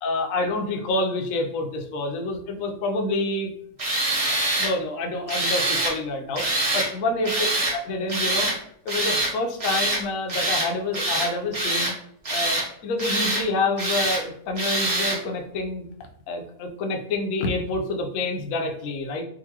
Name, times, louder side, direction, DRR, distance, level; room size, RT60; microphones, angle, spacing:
voice 1, 0.0-3.5 4.3-6.5 6.7-7.5 7.7-8.5 8.8-11.9 12.3-15.9 16.3-19.2, left 2 dB, 65° left, 3 dB, 0.9 m, -27 dB
Tools, 3.8-4.7 5.3-5.9 6.4-6.9 7.2-7.8 8.1-8.6 8.9-9.3 9.6-10.0 10.3-10.7 10.9-11.9 12.2-12.7 13.0-13.4 13.8-14.2 14.6-15.2, right 1 dB, 35° right, 0.6 m, -24 dB
3.8 x 2.6 x 2.8 m, 0.67 s
omnidirectional pair, 1.7 m